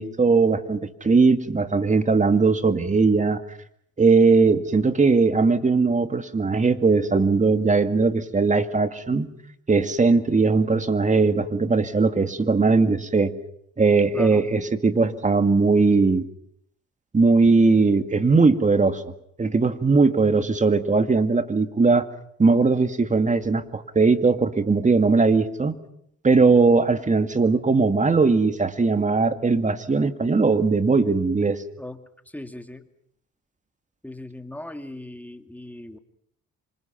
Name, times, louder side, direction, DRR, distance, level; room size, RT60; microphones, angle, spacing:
voice 1, 0.0-3.4 4.0-9.3 9.7-13.3 13.8-16.3 17.1-19.0 19.4-22.1 22.4-25.7 26.2-31.6, right 4 dB, 25° right, 9 dB, 2.1 m, -19 dB
voice 2, 14.1-14.4 31.8-32.8 34.0-36.0, left 1 dB, 5° left, 7 dB, 2.3 m, -38 dB
27.5 x 25.5 x 6.0 m, 0.70 s
cardioid pair, 90°, 30 cm